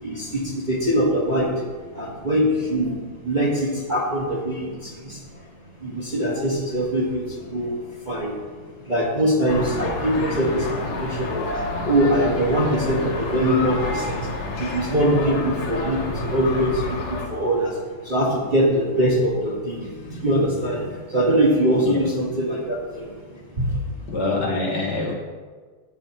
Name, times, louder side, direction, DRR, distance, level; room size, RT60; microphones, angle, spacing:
voice 1, 0.0-1.6 1.9-3.0 3.2-5.2 5.8-7.8 8.0-8.3 8.9-14.3 14.6-23.9, equal, 25° right, -5 dB, 1.5 m, -23 dB
sound 1, 9.5-17.3, left 2 dB, 80° left, 2.4 m, -29 dB
voice 2, 24.1-25.1, left 3 dB, 55° left, -1 dB, 1.9 m, -25 dB
14.5 x 9.0 x 3.0 m, 1.5 s
omnidirectional pair, 2.3 m